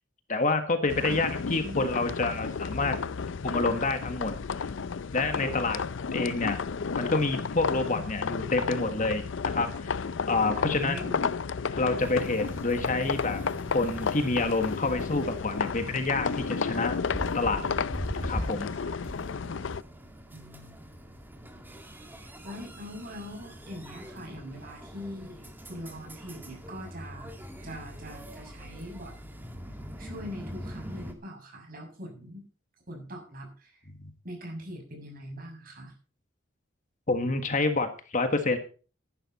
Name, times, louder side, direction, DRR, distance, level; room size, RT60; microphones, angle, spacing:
voice 1, 0.3-3.0 3.4-4.7 5.1-5.8 6.1-6.6 7.0-11.0 11.7-13.4 13.7-17.0 17.3-17.6 18.2-18.7 37.1-38.6, left 3 dB, 40° left, 8 dB, 1.6 m, -28 dB
sound 1, 0.9-19.8, left 5 dB, 70° left, 0.5 m, -32 dB
voice 2, 1.0-2.1 10.6-11.3 17.3-19.0 20.3-20.9 22.4-27.3 27.6-29.1 30.0-32.5 32.9-33.9 34.2-35.9, equal, 45° right, 2 dB, 6.8 m, -42 dB
sound 2, 12.0-31.1, equal, 10° right, 2.1 m, -42 dB
14.5 x 11.0 x 4.3 m, 0.37 s
head